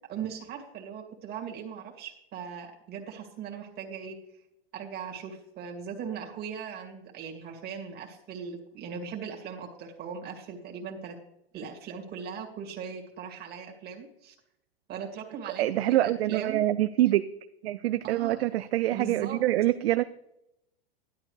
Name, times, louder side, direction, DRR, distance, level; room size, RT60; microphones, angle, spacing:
voice 1, 0.1-4.2 4.7-11.2 11.5-14.3 14.9-16.6 18.0-18.4 18.9-19.4, right 7 dB, 30° right, 1 dB, 2.3 m, -39 dB
voice 2, 15.6-17.2 17.6-20.0, right 14 dB, 75° right, 12 dB, 0.6 m, -25 dB
13.0 x 11.5 x 3.3 m, 0.81 s
hypercardioid pair, 130°, 31 cm